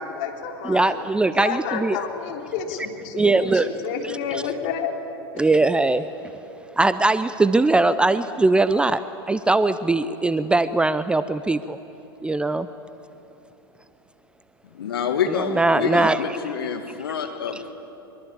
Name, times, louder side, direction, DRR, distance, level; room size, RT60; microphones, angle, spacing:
voice 1, 0.0-1.1 1.3-4.9, left 7 dB, 45° left, 2 dB, 3.4 m, -30 dB
voice 2, 0.6-2.0 3.1-3.7 4.3-4.4 5.4-6.1 6.8-9.0 9.3-11.8 12.2-12.7 15.3-16.2, right 2 dB, 5° right, 14 dB, 0.5 m, -20 dB
voice 3, 14.7-17.7, left 7 dB, 65° left, 6 dB, 1.7 m, -27 dB
23.5 x 22.5 x 8.6 m, 3.0 s
figure-of-eight pair, 90°, 13 cm